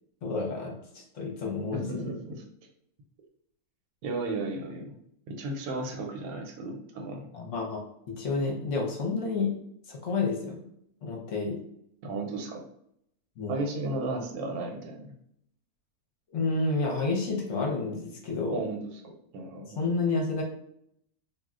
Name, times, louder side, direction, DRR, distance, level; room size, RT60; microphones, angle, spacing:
voice 1, 0.2-2.1 7.3-7.8 8.2-9.5 9.9-10.6 11.0-11.6 13.4-13.6 16.3-18.6 19.8-20.4, left 3 dB, 60° left, -1 dB, 0.9 m, -30 dB
voice 2, 1.7-2.4 4.0-5.0 5.3-7.3 12.0-12.6 13.5-15.1 18.5-18.8 19.3-19.8, right 2 dB, 80° right, 2 dB, 1.1 m, -34 dB
2.6 x 2.1 x 3.5 m, 0.71 s
omnidirectional pair, 1.6 m